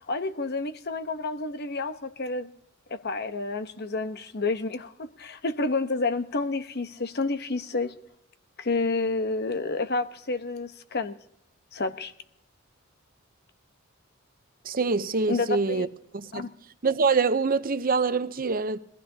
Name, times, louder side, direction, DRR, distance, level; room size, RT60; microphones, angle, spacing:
voice 1, 0.1-2.5 2.9-7.9 8.6-11.2 11.7-12.1 15.3-15.9 16.3-16.5, left 3 dB, 55° left, 1.0 m, -29 dB
voice 2, 14.7-15.9 16.1-16.5 16.8-18.8, right 4 dB, 45° right, 0.7 m, -25 dB
22.0 x 15.0 x 2.8 m
head